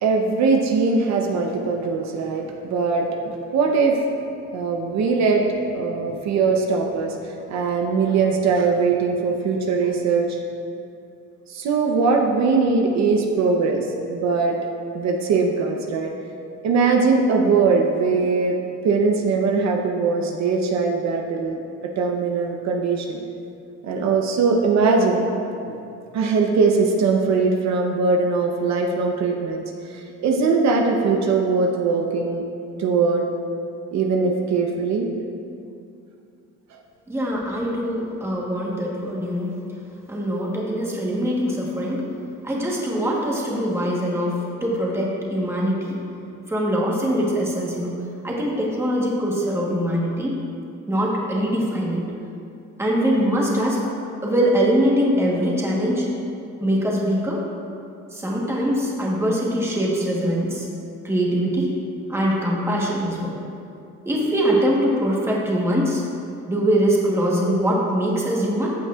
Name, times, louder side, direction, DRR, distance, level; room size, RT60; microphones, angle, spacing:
voice 1, 0.0-4.0 4.5-5.5 5.7-10.4 11.5-14.6 14.9-16.1 16.6-18.6 18.8-21.6 22.0-23.2 23.8-25.3 26.1-29.6 29.9-32.4 32.8-33.3 33.9-35.1, right 4 dB, 65° right, 2 dB, 0.9 m, -21 dB
voice 2, 37.1-39.5 40.1-42.1 42.4-46.0 46.5-48.0 48.2-50.3 50.9-52.0 52.8-53.8 54.2-56.1 56.6-57.4 58.1-60.7 61.0-61.7 62.1-63.3 64.0-66.0 66.5-68.8, equal, 10° right, -4 dB, 1.2 m, -22 dB
14.5 x 8.3 x 2.4 m, 2.5 s
cardioid pair, 170°, 29 cm